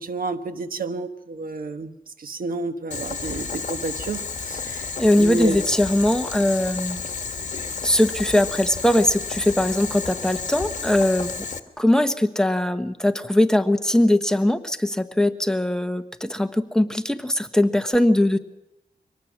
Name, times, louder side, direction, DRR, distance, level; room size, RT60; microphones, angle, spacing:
voice 1, 0.0-4.9 5.2-5.7, right 3 dB, 70° right, 9 dB, 1.3 m, -30 dB
Boiling, 2.9-11.6, left 5 dB, 55° left, 1.4 m, -32 dB
voice 2, 5.0-7.0 7.8-11.3 11.8-18.4, left 1 dB, 5° left, 8 dB, 1.1 m, -20 dB
24.0 x 19.0 x 6.2 m, 0.91 s
wide cardioid pair, 85°, 15 cm